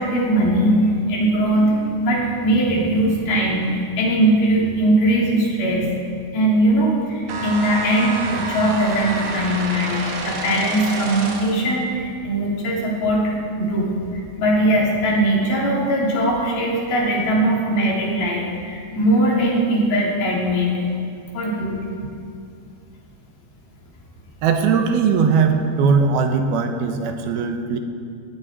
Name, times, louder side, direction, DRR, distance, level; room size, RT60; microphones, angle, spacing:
voice 1, 0.0-5.9 6.3-20.7 21.3-22.0, right 1 dB, 80° left, -4 dB, 5.2 m, -20 dB
sound 1, 7.3-11.7, right 3 dB, 60° right, 3.1 m, -28 dB
voice 2, 24.4-27.8, right 5 dB, 90° right, 5 dB, 3.1 m, -19 dB
19.5 x 16.5 x 4.5 m, 2.4 s
omnidirectional pair, 4.3 m